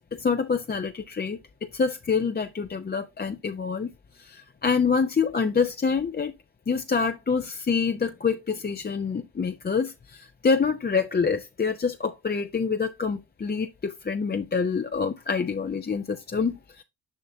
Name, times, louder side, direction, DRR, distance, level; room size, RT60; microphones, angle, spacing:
voice 1, 0.0-3.9 4.2-6.3 6.7-16.8, left 5 dB, 25° left, 0.5 m, -26 dB
7.1 x 5.4 x 2.7 m
supercardioid pair, 50°, 44 cm